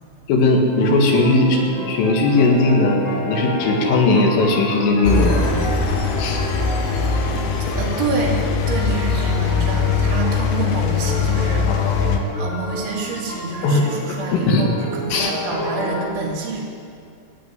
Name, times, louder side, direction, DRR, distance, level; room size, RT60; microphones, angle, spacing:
voice 1, 0.3-5.4 6.2-6.4 11.7-12.3 13.6-14.7 15.1-15.3, left 2 dB, 90° left, 1 dB, 4.5 m, -18 dB
sound 1, 0.7-16.0, equal, 55° left, 7.0 m, -30 dB
Engine, 5.0-12.2, left 5 dB, 75° left, 3.3 m, -21 dB
voice 2, 6.9-11.9 12.4-14.7 15.0-16.6, right 3 dB, 70° right, -2 dB, 4.7 m, -28 dB
15.0 x 9.6 x 9.4 m, 2.4 s
omnidirectional pair, 5.7 m